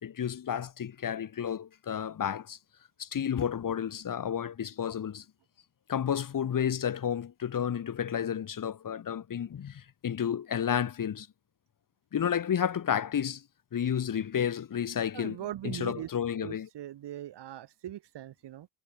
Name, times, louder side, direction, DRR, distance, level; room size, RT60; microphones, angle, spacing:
voice 1, 0.0-2.6 3.0-5.2 5.9-11.3 12.1-13.4 13.7-15.4 15.6-16.7, left 8 dB, 45° left, 2.6 m, -31 dB
voice 2, 15.1-18.7, right 12 dB, 65° right, 4.0 m, -41 dB
cardioid pair, 95°, 44 cm